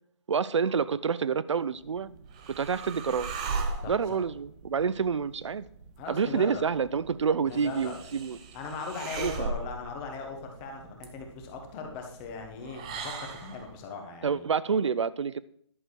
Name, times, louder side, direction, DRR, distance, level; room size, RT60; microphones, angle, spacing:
voice 1, 0.3-2.1 2.5-3.3 3.9-5.7 6.1-8.4 9.2-9.5 14.2-15.4, right 6 dB, 75° right, 0.6 m, -28 dB
sound 1, 1.7-13.8, right 4 dB, 15° right, 0.5 m, -39 dB
voice 2, 3.8-4.2 6.0-6.6 7.4-8.0 8.5-14.5, left 5 dB, 15° left, 1.1 m, -39 dB
11.0 x 6.6 x 4.7 m
hypercardioid pair, 170°, 15 cm